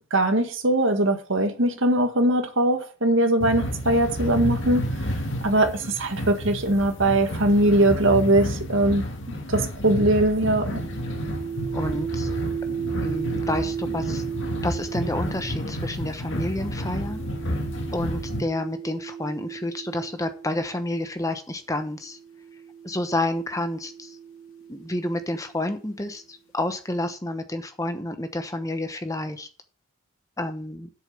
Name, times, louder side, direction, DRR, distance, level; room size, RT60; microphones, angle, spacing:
voice 1, 0.1-4.9 5.4-9.0 9.5-10.8, right 1 dB, 65° right, 1.8 m, -21 dB
sound 1, 3.4-18.4, equal, 60° left, 2.2 m, -31 dB
sound 2, 10.7-21.0 21.9-25.7, right 7 dB, 80° left, 2.6 m, -35 dB
voice 2, 11.7-12.3 13.0-14.2 14.6-17.2 17.9-22.2 22.8-24.2 24.7-29.5 30.4-30.9, left 1 dB, 15° left, 1.0 m, -29 dB
8.2 x 6.8 x 6.8 m
head